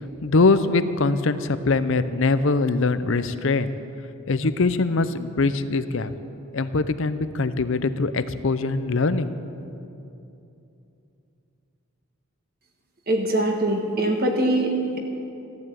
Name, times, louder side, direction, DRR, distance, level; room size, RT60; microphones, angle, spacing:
voice 1, 0.2-3.7 4.3-6.1 6.5-9.3, left 3 dB, 60° left, 12 dB, 0.6 m, -22 dB
voice 2, 13.1-15.0, right 1 dB, 40° right, 1 dB, 1.6 m, -23 dB
14.5 x 11.0 x 8.3 m, 2.8 s
head